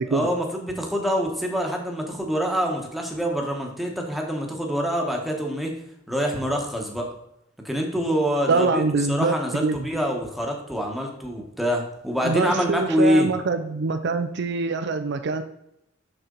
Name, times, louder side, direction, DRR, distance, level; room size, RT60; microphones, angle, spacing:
voice 1, 0.1-5.7 6.1-7.1 7.6-8.8 9.1-13.3, equal, ahead, 1 dB, 1.2 m, -25 dB
voice 2, 8.5-9.9 12.2-15.4, right 4 dB, 60° right, 8 dB, 0.5 m, -24 dB
6.6 x 6.0 x 3.9 m, 0.78 s
head